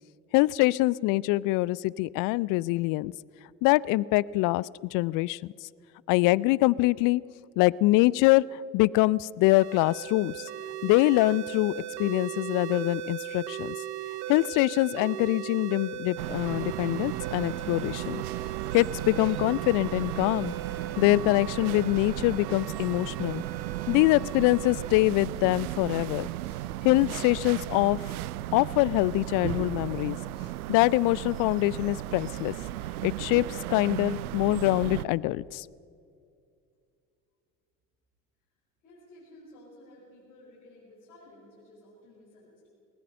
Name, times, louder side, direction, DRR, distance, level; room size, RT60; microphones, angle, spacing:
voice 1, 0.3-3.1 3.6-5.5 6.1-7.2 7.6-10.4 10.8-13.8 14.3-18.2 18.7-20.5 21.0-23.4 23.9-26.3 26.8-28.0 28.5-30.2 30.7-32.5 33.0-35.7, left 19 dB, 45° left, 23 dB, 0.5 m, -24 dB
sound 1, 9.4-25.0, right 10 dB, 55° right, 1.4 m, -38 dB
sound 2, 16.2-35.1, right 15 dB, 70° right, 0.7 m, -35 dB
voice 2, 38.8-42.7, left 1 dB, 70° left, -8 dB, 6.6 m, -53 dB
20.5 x 20.0 x 6.5 m, 2.4 s
figure-of-eight pair, 65°, 46 cm